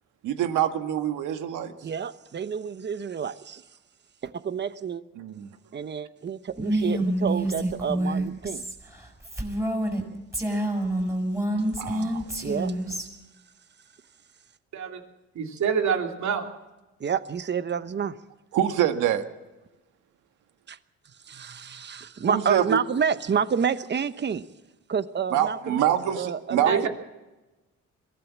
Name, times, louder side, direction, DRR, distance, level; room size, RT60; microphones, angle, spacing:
voice 1, 0.2-1.7 5.2-5.5 11.8-12.2 18.5-19.2 22.3-22.8 25.3-26.9, right 10 dB, 90° right, 7 dB, 1.7 m, -25 dB
voice 2, 1.8-3.6 4.2-5.0 5.7-8.6 12.4-12.7 17.0-18.2 20.7-20.8 21.3-24.5 24.9-26.9, right 6 dB, 35° right, 12 dB, 1.0 m, -29 dB
Female speech woman speaking, 6.6-10.0 10.3-13.0, right 1 dB, 10° right, 6.1 m, -27 dB
voice 3, 15.3-16.5 26.7-26.9, right 7 dB, 65° right, 3 dB, 3.0 m, -26 dB
22.5 x 16.0 x 7.4 m, 1.1 s
cardioid pair, 90°, 30 cm